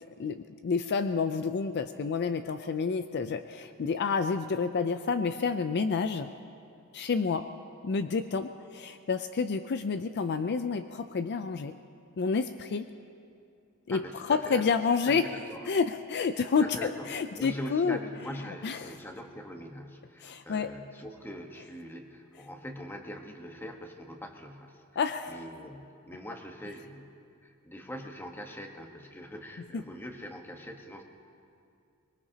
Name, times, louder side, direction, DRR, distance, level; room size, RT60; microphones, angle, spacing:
voice 1, 0.2-6.3 6.9-7.5 7.8-11.7 12.2-12.9 13.9-15.3 15.7-18.0 18.6-18.9 20.2-20.7 25.0-25.4, left 5 dB, 50° left, 10 dB, 0.4 m, -29 dB
voice 2, 13.9-14.6 15.0-15.7 16.6-17.1 17.3-24.8 25.3-31.0, equal, 10° left, 3 dB, 1.2 m, -42 dB
24.0 x 21.5 x 2.8 m, 2.5 s
head